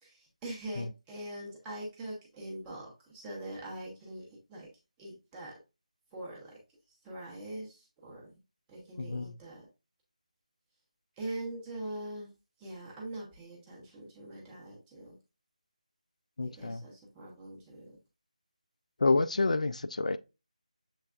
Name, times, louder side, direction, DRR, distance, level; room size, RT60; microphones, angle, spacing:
voice 1, 0.0-4.7 5.0-5.6 6.1-6.6 7.0-8.4 8.7-9.7 11.2-12.3 12.6-15.2 16.4-18.0, right 1 dB, 5° right, 0.6 m, -43 dB
voice 2, 9.0-9.3 16.4-16.8 19.0-20.2, left 3 dB, 65° left, 0.4 m, -28 dB
6.9 x 3.3 x 2.3 m
figure-of-eight pair, 175°, 4 cm